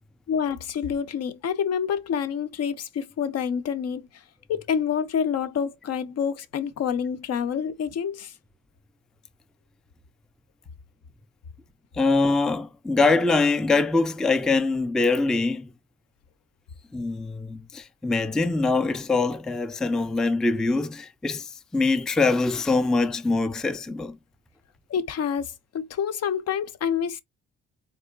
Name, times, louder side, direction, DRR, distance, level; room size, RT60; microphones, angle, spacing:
voice 1, 0.3-4.0 4.5-8.3 24.9-27.2, left 7 dB, 55° left, 0.5 m, -27 dB
voice 2, 11.9-15.7 16.9-24.2, left 3 dB, ahead, 0.3 m, -23 dB
3.7 x 3.0 x 2.3 m
cardioid pair, 90°, 30 cm